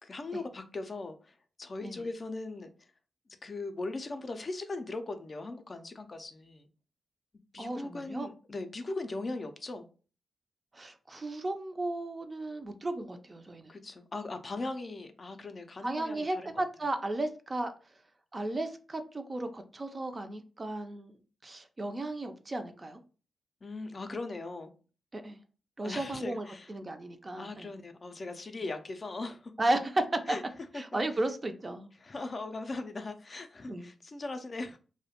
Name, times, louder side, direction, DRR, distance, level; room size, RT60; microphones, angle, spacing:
voice 1, 0.0-2.7 3.4-6.7 7.5-9.9 13.7-16.6 23.6-24.7 25.8-26.7 27.4-29.5 30.3-30.4 30.7-30.8 32.0-34.8, left 2 dB, 40° left, 0.3 m, -39 dB
voice 2, 7.6-8.3 10.7-13.7 15.8-17.7 18.3-23.0 25.1-25.4 25.8-27.7 29.6-30.4 30.7-31.9 33.7-33.9, right 2 dB, 30° right, 0.4 m, -34 dB
2.3 x 2.1 x 2.8 m
cardioid pair, 75°, 0 cm